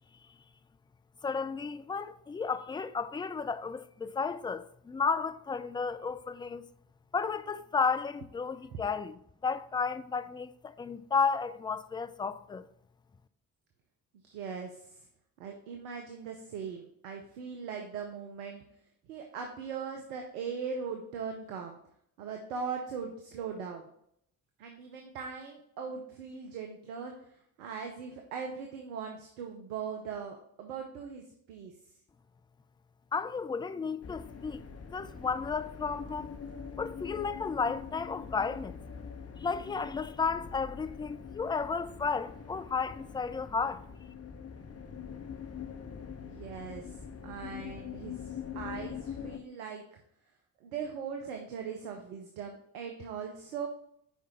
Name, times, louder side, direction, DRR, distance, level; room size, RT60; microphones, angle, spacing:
voice 1, 1.2-6.7 7.1-12.7 33.1-34.6 34.9-36.3 36.8-38.8 39.4-43.8, left 5 dB, 10° left, 0.3 m, -33 dB
voice 2, 14.2-15.1 15.4-18.6 19.1-21.8 22.2-23.9 24.6-31.7 46.2-50.0 50.6-53.7, right 6 dB, 85° right, 0.7 m, -40 dB
sound 1, 34.0-49.4, left 7 dB, 35° left, 0.9 m, -44 dB
5.4 x 4.8 x 4.2 m
hypercardioid pair, 45°, 44 cm